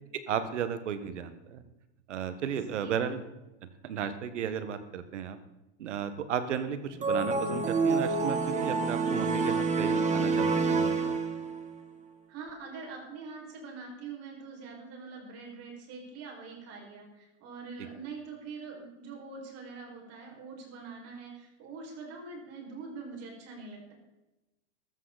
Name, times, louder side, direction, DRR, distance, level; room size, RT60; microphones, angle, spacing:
voice 1, 0.3-1.6 2.1-3.2 3.8-5.4 5.8-11.2, right 8 dB, 85° right, 11 dB, 1.7 m, -34 dB
voice 2, 2.7-3.2 12.3-23.9, right 4 dB, 45° right, 0 dB, 6.0 m, -44 dB
sound 1, 7.0-11.7, right 4 dB, 20° right, 1.8 m, -28 dB
15.0 x 13.5 x 4.2 m, 1.0 s
supercardioid pair, 125°, 35 cm